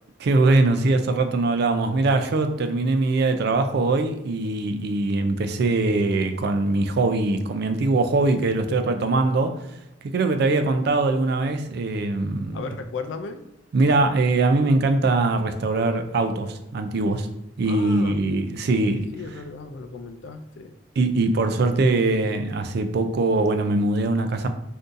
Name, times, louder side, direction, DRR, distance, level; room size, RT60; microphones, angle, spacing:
voice 1, 0.2-9.6 10.0-12.6 13.7-17.3 17.6-19.1 21.0-24.5, right 2 dB, 60° right, 8 dB, 0.4 m, -22 dB
voice 2, 12.5-13.4 17.7-18.4 18.8-20.7, left 4 dB, 85° left, 8 dB, 0.4 m, -36 dB
3.7 x 2.6 x 2.5 m, 0.89 s
head